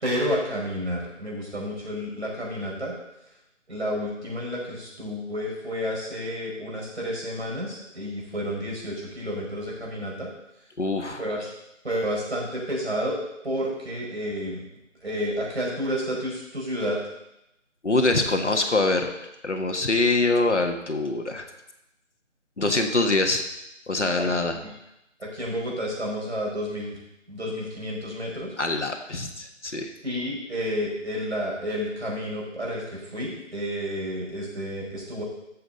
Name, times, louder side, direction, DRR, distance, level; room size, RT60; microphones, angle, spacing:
voice 1, 0.0-2.9 3.7-10.3 11.2-11.5 11.8-13.2 13.4-14.6 15.0-17.0 24.2-24.3 24.5-24.7 25.2-27.0 27.3-28.5 30.0-35.2, equal, 55° right, -4 dB, 5.0 m, -30 dB
voice 2, 10.8-11.2 17.8-19.1 19.4-21.5 22.6-23.4 23.9-24.6 28.6-29.9, left 2 dB, 65° left, 5 dB, 1.6 m, -24 dB
14.0 x 7.7 x 4.0 m, 0.87 s
figure-of-eight pair, 175°, 38 cm